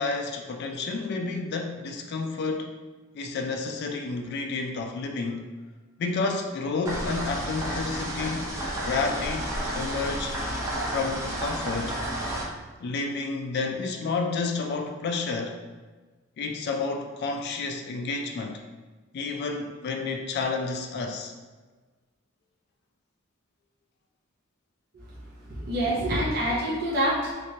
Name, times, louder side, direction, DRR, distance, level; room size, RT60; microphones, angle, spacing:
voice 1, 0.0-2.7 3.1-5.4 6.0-8.5 8.8-10.3 10.9-12.0 12.8-15.6 16.4-18.6 19.1-21.3, left 4 dB, 55° left, 3 dB, 0.3 m, -30 dB
sound 1, 6.9-12.4, right 1 dB, 15° right, 0.6 m, -31 dB
voice 2, 25.5-27.3, right 1 dB, 50° right, -7 dB, 0.7 m, -26 dB
3.2 x 3.0 x 2.7 m, 1.3 s
head